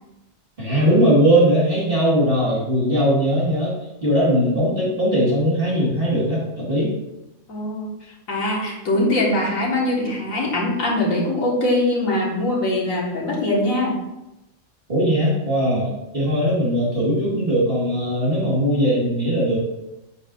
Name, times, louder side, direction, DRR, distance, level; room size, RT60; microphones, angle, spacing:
voice 1, 0.6-6.9 14.9-19.6, equal, 45° right, -6 dB, 2.1 m, -19 dB
voice 2, 7.5-14.0, left 1 dB, 85° left, -3 dB, 2.2 m, -22 dB
9.7 x 5.7 x 2.6 m, 0.96 s
omnidirectional pair, 1.4 m